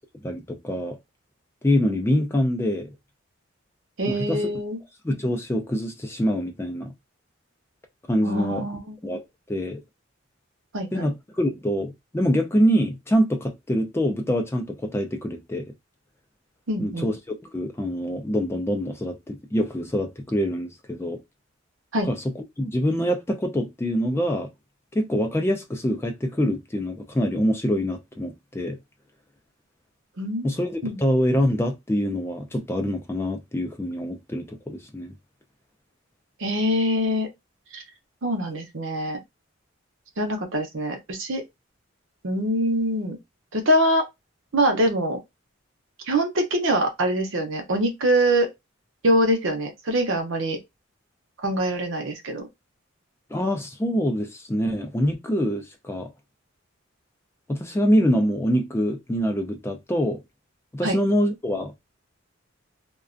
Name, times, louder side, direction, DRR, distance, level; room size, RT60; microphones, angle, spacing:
voice 1, 0.2-1.0 1.6-2.9 4.1-4.4 5.0-6.9 8.1-8.7 9.0-9.8 10.9-15.7 16.8-21.2 22.0-24.5 24.9-28.8 30.4-35.1 53.3-56.1 57.5-60.2 60.7-61.7, equal, 10° left, 0.3 m, -25 dB
voice 2, 4.0-4.8 8.2-9.0 10.7-11.1 16.7-17.1 21.9-22.1 30.2-30.5 30.8-31.0 36.4-37.3 37.7-37.8 38.2-39.2 40.2-41.4 42.2-43.2 43.5-44.0 44.5-45.2 46.1-48.5 49.0-50.6 51.4-52.4 60.8-61.0, right 1 dB, 70° right, 0.7 m, -24 dB
2.4 x 2.2 x 2.4 m
head